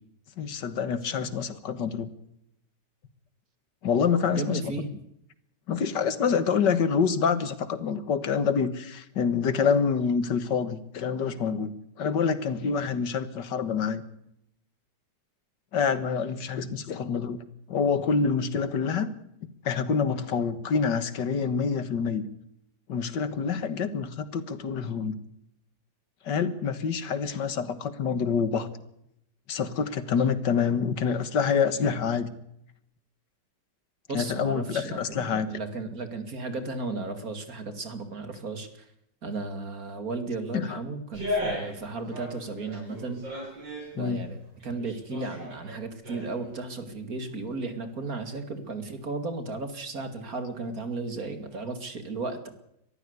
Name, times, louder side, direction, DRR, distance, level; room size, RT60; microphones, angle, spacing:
voice 1, 0.4-2.1 3.8-4.6 5.7-11.7 12.0-14.0 15.7-17.4 17.7-19.1 19.4-22.3 22.9-25.2 26.3-28.7 29.5-32.3 34.1-35.5 40.5-40.8 43.9-44.3, left 6 dB, 75° left, 13 dB, 2.1 m, -27 dB
voice 2, 4.3-4.9 34.1-38.7 39.2-43.2 44.0-52.5, right 3 dB, 50° right, 9 dB, 2.9 m, -34 dB
sound 1, 41.1-41.8 42.1-43.9 44.4-46.5 46.8-46.9, left 1 dB, 90° right, 8.7 m, -35 dB
22.5 x 14.5 x 8.2 m, 0.78 s
omnidirectional pair, 1.9 m